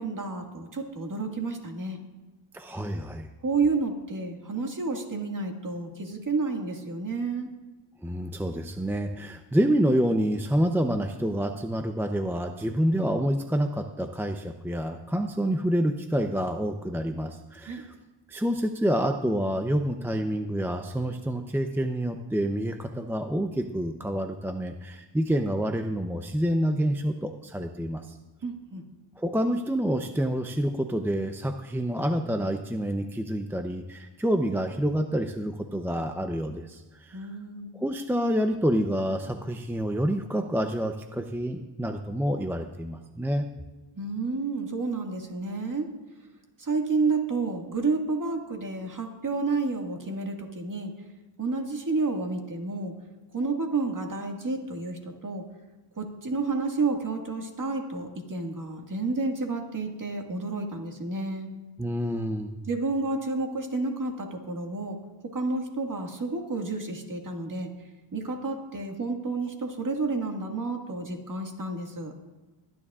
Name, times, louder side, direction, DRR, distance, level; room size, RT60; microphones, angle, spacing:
voice 1, 0.0-2.0 3.4-7.5 17.6-17.8 28.4-28.8 37.1-37.8 43.9-45.9 46.6-50.9 51.4-52.9 53.3-55.4 56.0-61.5 62.7-65.0 65.3-67.7 68.1-72.1, right 3 dB, 40° right, 2 dB, 1.9 m, -30 dB
voice 2, 2.5-3.3 8.0-17.9 18.3-28.2 29.2-37.3 37.7-43.5 61.8-62.7, equal, 5° right, 6 dB, 0.6 m, -28 dB
22.5 x 9.8 x 2.4 m, 1.2 s
cardioid pair, 85°, 50 cm